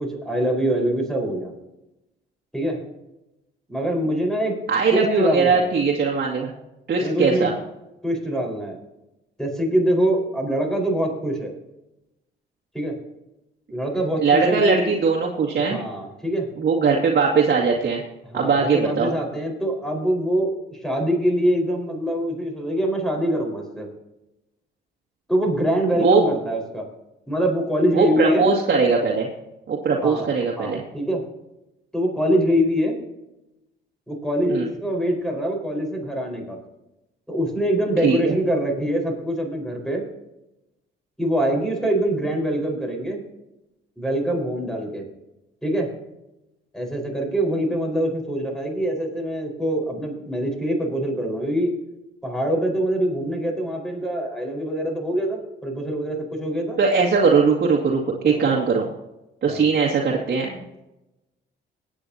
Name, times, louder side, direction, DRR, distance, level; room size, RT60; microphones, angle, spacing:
voice 1, 0.0-1.5 2.5-2.8 3.7-4.6 4.9-5.8 7.0-7.5 8.0-8.8 9.4-11.5 12.7-12.9 13.7-14.9 15.7-16.5 18.2-23.9 25.3-26.9 27.3-28.5 30.0-30.3 30.6-31.2 31.9-33.0 34.1-36.6 37.3-40.0 41.2-43.2 44.0-45.0 45.6-45.9 46.7-51.7 52.2-56.8 58.3-58.7 59.5-59.7, equal, ahead, 1 dB, 4.7 m, -24 dB
voice 2, 4.7-6.5 6.9-7.5 14.2-15.8 16.6-18.0 18.3-19.1 26.0-26.2 27.9-29.3 29.7-30.8 34.5-34.7 38.0-38.4 56.8-58.8 59.4-60.6, right 5 dB, 55° right, -1 dB, 2.1 m, -20 dB
21.5 x 9.0 x 2.8 m, 0.94 s
cardioid pair, 90°, 20 cm